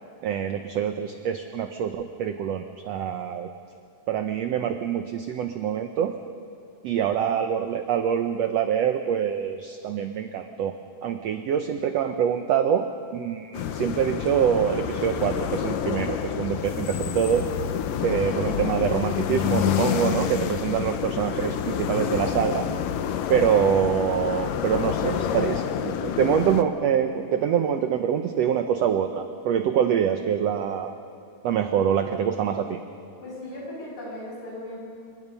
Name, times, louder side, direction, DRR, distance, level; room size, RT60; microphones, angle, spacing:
voice 1, 0.2-3.5 4.1-6.1 6.8-12.9 13.1-17.5 18.0-22.6 23.3-30.9 31.4-32.8, right 8 dB, 75° right, 7 dB, 1.5 m, -25 dB
sound 1, 13.5-26.6, left 9 dB, 80° left, 2.5 m, -28 dB
voice 2, 33.2-34.8, left 1 dB, 35° left, -5 dB, 8.2 m, -37 dB
27.0 x 24.0 x 5.5 m, 2.4 s
omnidirectional pair, 3.9 m